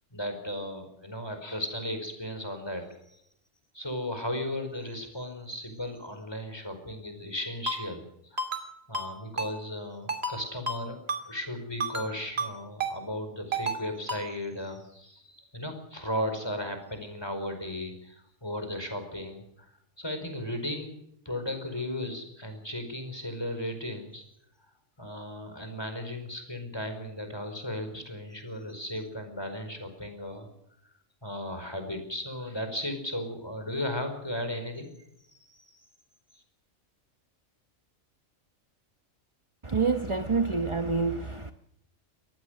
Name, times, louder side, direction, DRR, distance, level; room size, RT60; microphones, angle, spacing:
voice 1, 0.1-2.8 3.7-8.0 8.3-8.5 8.9-11.0 11.3-19.7 20.0-20.9 21.2-24.2 25.0-30.5 31.2-34.9 35.3-35.8, left 1 dB, 20° left, 5.0 m, -35 dB
Ringtone, 7.7-7.8 8.4-8.7 8.9-9.1 9.4-9.5 10.1-10.4 10.7-10.8 11.1-11.2 11.8-12.1 12.4-12.5 12.8-12.9 13.5-13.8 14.1-14.2, right 2 dB, 50° right, 2.9 m, -30 dB
voice 2, 39.6-41.5, right 4 dB, 25° right, 0.9 m, -27 dB
24.5 x 19.0 x 6.5 m
omnidirectional pair, 1.3 m